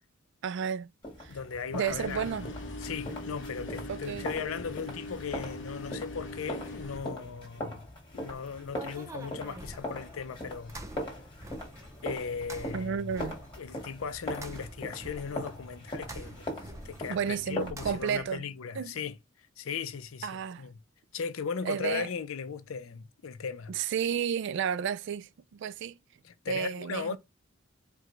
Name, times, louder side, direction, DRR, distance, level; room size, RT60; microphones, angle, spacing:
voice 1, 0.4-0.9 1.2-1.4 1.7-2.5 3.9-4.3 12.7-13.4 17.1-18.4 18.8-18.9 20.2-20.7 21.6-22.1 23.7-25.9 26.5-27.2, right 7 dB, 60° right, 0.3 m, -32 dB
sound 1, 1.0-17.7, left 1 dB, 25° left, 1.6 m, -41 dB
voice 2, 1.3-2.5 2.8-7.8 8.1-10.8 12.0-13.1 13.6-16.5 16.8-19.2 19.6-20.7 21.1-23.8 26.2-27.2, left 6 dB, 85° left, 0.5 m, -37 dB
sound 2, 1.9-7.0, left 2 dB, 65° left, 1.0 m, -41 dB
sound 3, 8.2-18.4, right 1 dB, 15° right, 0.6 m, -47 dB
4.6 x 2.3 x 3.7 m
head